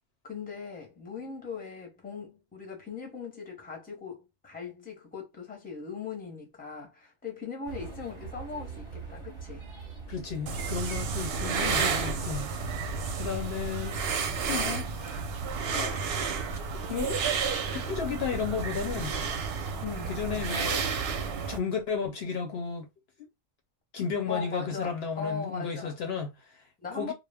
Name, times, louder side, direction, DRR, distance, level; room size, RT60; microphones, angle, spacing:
voice 1, 0.2-9.6 19.8-20.2 24.3-26.0 26.8-27.1, left 5 dB, 10° left, 0.7 m, -39 dB
sound 1, 7.7-17.2, right 5 dB, 30° right, 0.7 m, -46 dB
voice 2, 10.1-12.5 13.2-14.0 14.5-15.2 15.6-16.0 16.7-17.2 17.6-19.1 20.1-20.8 21.5-22.9 23.9-26.6 26.9-27.1, left 6 dB, 65° left, 0.8 m, -33 dB
sound 2, 10.5-21.6, right 5 dB, 65° right, 0.7 m, -31 dB
2.2 x 2.0 x 3.3 m
omnidirectional pair, 1.2 m